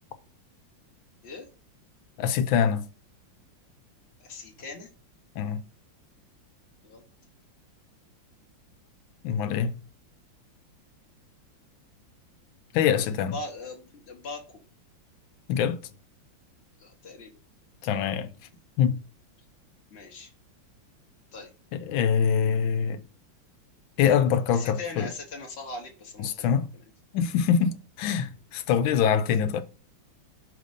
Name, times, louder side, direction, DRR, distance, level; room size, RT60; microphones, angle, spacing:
voice 1, 2.2-2.9 5.4-5.6 9.2-9.8 12.7-13.3 15.5-15.8 17.8-18.3 18.8-19.0 21.9-23.0 24.0-25.1 26.2-26.7 27.1-29.6, left 7 dB, 85° left, 1.4 m, -24 dB
voice 2, 4.2-4.9 6.8-7.0 13.0-14.6 16.8-17.3 19.9-20.3 21.3-21.5 24.5-26.3 26.7-26.8, left 3 dB, 45° left, 0.9 m, -40 dB
5.1 x 4.1 x 5.1 m
omnidirectional pair, 2.1 m